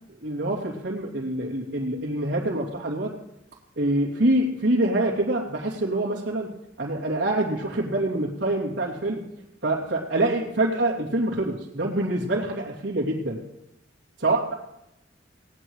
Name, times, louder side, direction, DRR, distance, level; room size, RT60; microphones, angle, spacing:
voice 1, 0.2-3.1 3.8-6.5 6.8-9.2 9.6-13.4 14.2-14.5, right 1 dB, 75° right, -7 dB, 3.1 m, -25 dB
20.0 x 19.0 x 3.3 m, 0.86 s
head